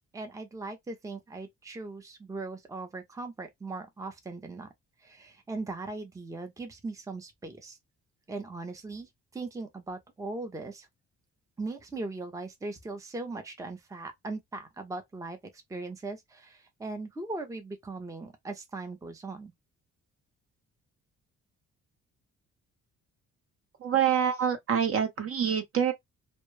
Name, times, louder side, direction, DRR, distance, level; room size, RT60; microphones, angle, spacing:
voice 1, 0.1-4.7 5.0-7.8 8.3-10.9 11.6-15.4 15.7-19.5, right 3 dB, 10° right, 0.6 m, -39 dB
voice 2, 23.8-25.9, right 8 dB, 50° right, 0.8 m, -26 dB
2.2 x 2.1 x 3.1 m
cardioid pair, 90°, 30 cm